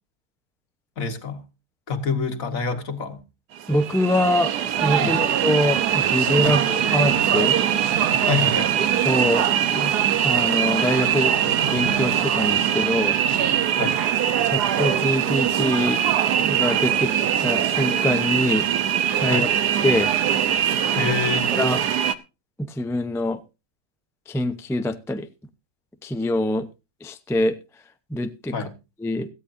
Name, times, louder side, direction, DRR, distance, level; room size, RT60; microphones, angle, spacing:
voice 1, 1.0-1.4 1.9-3.2 5.0-5.3 6.4-6.6 8.2-8.7 13.7-14.0 19.3-19.5 21.0-21.5 28.5-28.7, left 5 dB, 60° left, 1.9 m, -27 dB
sound 1, 3.6-22.2, right 10 dB, 90° right, 1.4 m, -22 dB
voice 2, 3.7-4.5 4.8-7.6 9.0-9.5 9.7-9.9 10.2-11.3 11.7-13.2 14.4-16.0 16.4-18.7 19.2-19.5 19.8-20.1 21.5-21.8 22.7-23.4 24.3-25.3 26.0-26.7 27.0-27.5 28.1-28.5 29.0-29.3, left 1 dB, 5° left, 0.4 m, -24 dB
sound 2, 6.4-14.0, right 2 dB, 75° right, 2.4 m, -38 dB
17.5 x 13.5 x 2.6 m
omnidirectional pair, 1.7 m